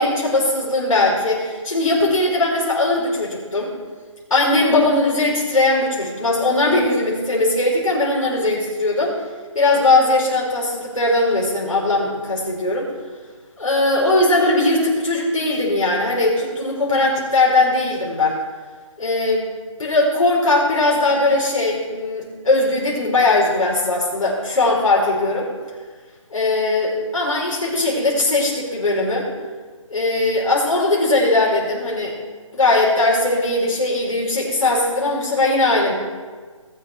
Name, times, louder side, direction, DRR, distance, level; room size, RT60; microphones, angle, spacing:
voice 1, 0.0-3.7 4.3-9.1 9.5-12.9 13.6-18.4 19.0-19.5 19.8-25.5 26.3-29.3 29.9-32.2 32.5-35.9, left 2 dB, 80° left, -4 dB, 4.9 m, -19 dB
19.0 x 9.7 x 4.5 m, 1.5 s
hypercardioid pair, 165°, 17 cm